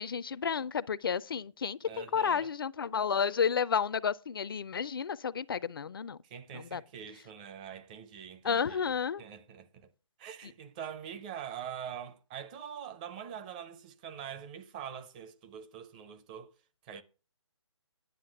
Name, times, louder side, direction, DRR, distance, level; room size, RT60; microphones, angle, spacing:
voice 1, 0.0-6.2 6.5-6.8 8.4-9.2, left 7 dB, 45° left, 0.4 m, -31 dB
voice 2, 1.8-2.5 6.2-9.9 10.2-16.6 16.8-17.0, right 8 dB, 15° right, 0.5 m, -44 dB
10.0 x 7.3 x 5.8 m
figure-of-eight pair, 145°, 16 cm